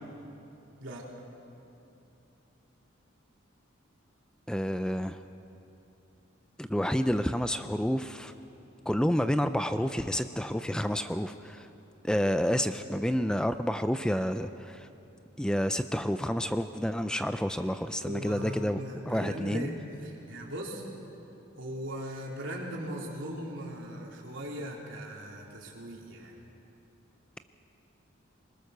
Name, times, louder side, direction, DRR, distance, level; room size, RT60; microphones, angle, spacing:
voice 1, 4.5-5.2 6.6-8.3 8.9-11.7 12.0-14.9 15.4-18.8 19.1-19.7, equal, 5° left, 10 dB, 0.4 m, -29 dB
voice 2, 18.0-20.8 21.6-26.4, equal, 70° right, -2 dB, 3.7 m, -39 dB
23.5 x 21.0 x 6.7 m, 2.9 s
head